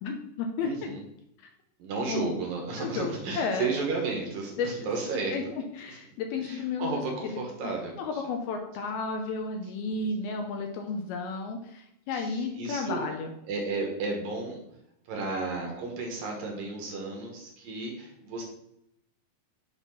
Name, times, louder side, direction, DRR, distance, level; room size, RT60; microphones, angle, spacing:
voice 1, 0.0-0.7 2.1-2.4 2.8-3.7 4.6-4.9 5.3-5.4 5.8-7.0 7.6-7.7 8.0-13.3, left 4 dB, 80° left, 3 dB, 2.3 m, -32 dB
voice 2, 0.6-1.0 1.8-5.4 5.9-6.0 6.4-8.2 9.9-10.4 12.1-13.0 13.5-14.6 15.1-18.4, right 3 dB, 65° right, 1 dB, 2.5 m, -33 dB
7.2 x 4.2 x 5.7 m, 0.79 s
omnidirectional pair, 4.9 m